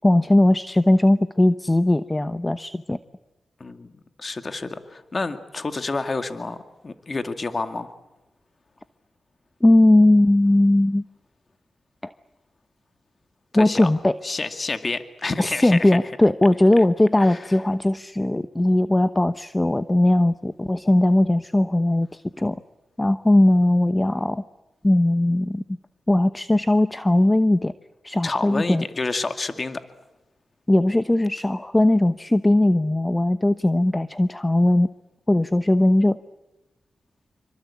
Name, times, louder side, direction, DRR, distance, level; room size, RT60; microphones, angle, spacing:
voice 1, 0.0-3.0 9.6-11.0 12.0-12.1 13.5-14.2 15.4-22.6 23.0-24.4 24.8-25.6 26.1-27.7 28.0-28.8 30.7-34.9 35.3-36.2, left 1 dB, 15° left, 12 dB, 1.0 m, -19 dB
voice 2, 3.6-3.9 4.2-7.9 13.5-13.9 14.2-16.0 17.2-17.6 28.2-29.8, left 3 dB, 40° left, 8 dB, 2.1 m, -29 dB
27.5 x 25.0 x 8.4 m, 1.0 s
cardioid pair, 65°, 0 cm